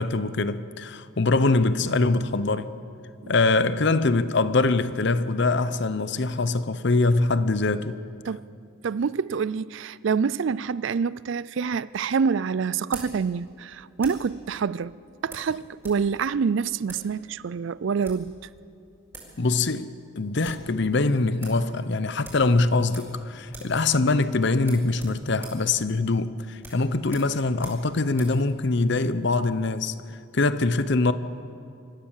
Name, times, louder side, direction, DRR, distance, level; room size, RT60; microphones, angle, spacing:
voice 1, 0.0-2.7 3.3-8.0 19.4-29.9 30.3-31.1, left 3 dB, 55° left, 0.7 m, -23 dB
voice 2, 8.8-14.9 15.2-18.4, right 5 dB, 60° right, 0.4 m, -27 dB
sound 1, 11.4-14.4 15.3-16.0 16.3-16.4 16.8-17.1 17.8-18.3 18.9-19.0 19.1-19.4 19.7-19.8 20.1-20.7 21.0-21.1 21.4-21.6 22.2-23.2 23.5-23.8 24.1-24.2 24.6-28.4, right 2 dB, 10° right, 4.5 m, -45 dB
26.0 x 14.5 x 7.3 m
head